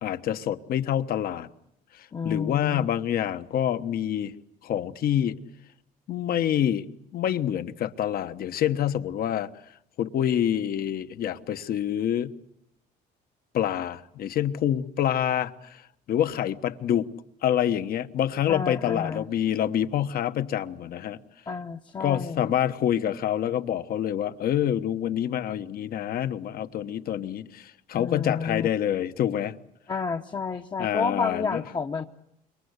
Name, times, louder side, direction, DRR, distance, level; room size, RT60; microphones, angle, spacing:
voice 1, 0.0-1.5 1.9-4.3 4.6-5.4 6.1-6.9 7.1-9.5 10.0-12.3 13.5-15.8 16.1-17.1 17.4-21.2 22.0-29.5 30.8-31.6, left 10 dB, 60° left, 1.2 m, -27 dB
voice 2, 2.1-2.9 18.5-19.3 21.5-22.5 27.9-28.7 29.9-32.1, left 5 dB, 25° left, 0.9 m, -30 dB
26.5 x 23.0 x 8.1 m
cardioid pair, 110°, 17 cm